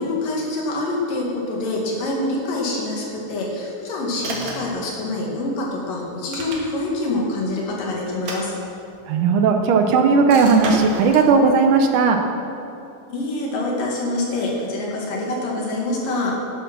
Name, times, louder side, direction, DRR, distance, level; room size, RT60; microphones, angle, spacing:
voice 1, 0.0-8.5 13.1-16.4, left 2 dB, 75° left, -2 dB, 3.8 m, -25 dB
sound 1, 4.2-4.8 6.1-7.0 8.1-9.1 10.3-11.3, right 2 dB, 55° right, 2.9 m, -31 dB
voice 2, 9.1-12.2, right 5 dB, 75° right, 5 dB, 2.3 m, -16 dB
12.5 x 11.0 x 6.1 m, 2.8 s
omnidirectional pair, 4.0 m